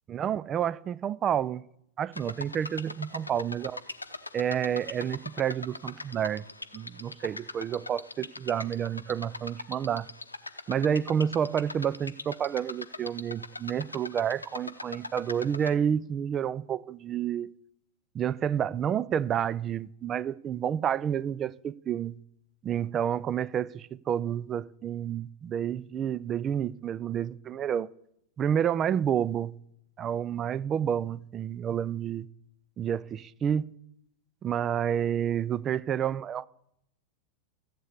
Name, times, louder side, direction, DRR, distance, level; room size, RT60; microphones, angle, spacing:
voice 1, 0.1-1.6 2.0-3.8 4.3-6.5 6.7-10.1 10.7-17.5 18.1-22.2 22.6-27.9 28.4-29.6 30.0-32.3 32.8-33.7 34.4-36.5, right 9 dB, 25° right, 0.4 m, -29 dB
sound 1, 2.1-15.7, left 2 dB, 80° left, 0.8 m, -41 dB
14.0 x 8.4 x 8.1 m
figure-of-eight pair, 90°, 0 cm